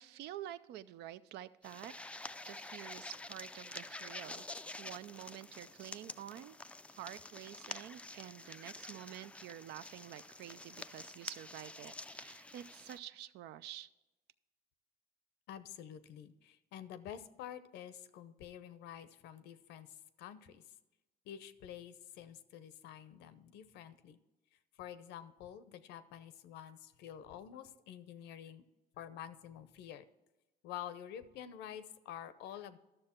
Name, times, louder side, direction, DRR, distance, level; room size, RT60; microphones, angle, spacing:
voice 1, 0.0-1.9 2.5-4.5 4.8-6.6 7.0-13.9, right 12 dB, 80° right, 14 dB, 0.5 m, -49 dB
sound 1, 1.6-13.0, left 2 dB, 5° left, 0.3 m, -48 dB
voice 2, 15.5-20.6 21.3-24.2 24.8-28.6 29.0-30.0 30.6-32.8, left 10 dB, 85° left, 13 dB, 0.7 m, -49 dB
12.0 x 6.6 x 4.4 m, 1.1 s
cardioid pair, 110°, 17 cm